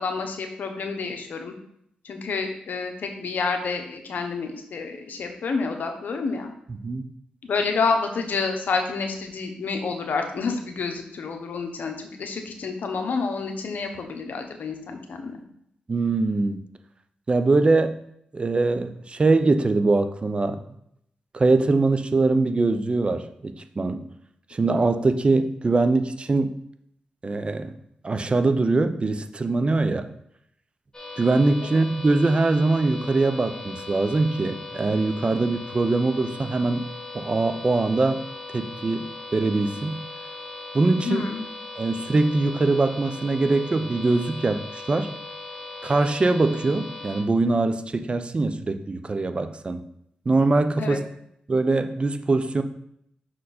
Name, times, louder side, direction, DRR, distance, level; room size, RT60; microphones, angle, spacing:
voice 1, 0.0-1.5 2.0-6.5 7.4-15.4 31.6-31.8 41.0-41.4 50.8-51.0, left 4 dB, 70° left, 4 dB, 1.0 m, -29 dB
voice 2, 15.9-16.6 17.3-18.0 18.3-20.6 21.3-24.0 24.5-26.5 27.2-27.7 28.0-30.1 31.2-38.2 38.5-40.0 40.7-41.3 41.8-45.1 45.8-49.8 50.3-51.0 51.5-52.6, right 3 dB, 35° right, 9 dB, 0.6 m, -22 dB
sound 1, 30.9-47.2, left 3 dB, 20° left, 2.1 m, -39 dB
6.2 x 4.3 x 4.3 m, 0.72 s
cardioid pair, 60°, 3 cm